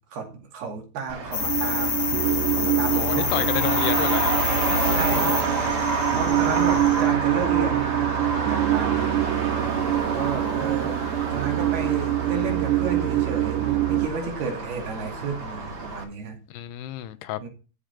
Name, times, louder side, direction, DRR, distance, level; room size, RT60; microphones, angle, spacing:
voice 1, 0.1-2.0 2.5-3.5 4.8-5.3 6.2-9.5 10.0-11.0 11.3-16.4 17.4-17.5, right 5 dB, 65° right, 4.2 m, -32 dB
Traffic noise roadway noise, 1.1-16.0, right 3 dB, 45° right, 1.3 m, -29 dB
sound 1, 1.3-7.1, left 8 dB, 65° left, 2.9 m, -28 dB
sound 2, 1.4-14.1, right 15 dB, 85° right, 2.7 m, -25 dB
voice 2, 2.9-4.3 6.1-6.9 16.5-17.5, left 12 dB, 85° left, 2.7 m, -31 dB
13.0 x 5.0 x 5.1 m
omnidirectional pair, 4.9 m